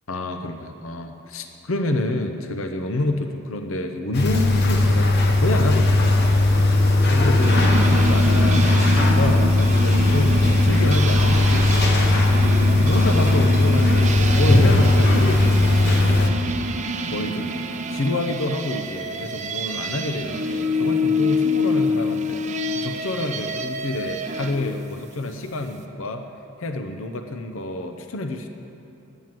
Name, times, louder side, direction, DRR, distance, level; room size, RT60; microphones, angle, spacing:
voice 1, 0.1-5.1 5.4-6.1 7.1-12.2 12.8-16.3 17.1-17.6 17.9-22.4 22.7-26.3 26.6-28.5, left 2 dB, 65° left, 6 dB, 0.7 m, -28 dB
sound 1, 4.1-16.3, left 2 dB, 45° left, 1.1 m, -17 dB
sound 2, 7.4-24.6, equal, 30° right, 0.6 m, -26 dB
10.5 x 9.0 x 7.6 m, 3.0 s
head